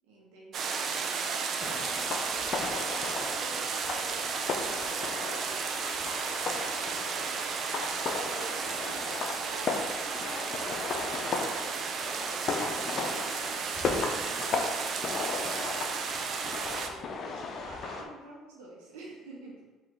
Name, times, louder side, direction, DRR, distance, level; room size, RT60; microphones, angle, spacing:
voice 1, 0.0-6.0 6.8-11.5 11.8-15.6 16.6-19.7, right 2 dB, 90° right, -3 dB, 0.9 m, -50 dB
sound 1, 0.5-16.9, right 5 dB, 55° right, 0.5 m, -33 dB
sound 2, 1.6-18.0, left 4 dB, 55° left, 0.5 m, -36 dB
3.8 x 2.9 x 4.4 m, 1.2 s
supercardioid pair, 75°, 0 cm